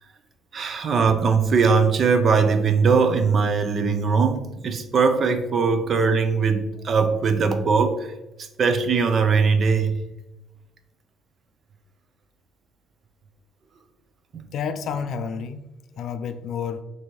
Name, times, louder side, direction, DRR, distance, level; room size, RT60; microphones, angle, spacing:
voice 1, 0.5-8.1 8.4-10.0 14.3-14.5, right 5 dB, 40° right, 0.5 m, -20 dB
voice 2, 14.5-15.7 16.0-16.8, left 6 dB, 60° left, 0.3 m, -30 dB
6.1 x 2.7 x 3.1 m
cardioid pair, 135°, 0 cm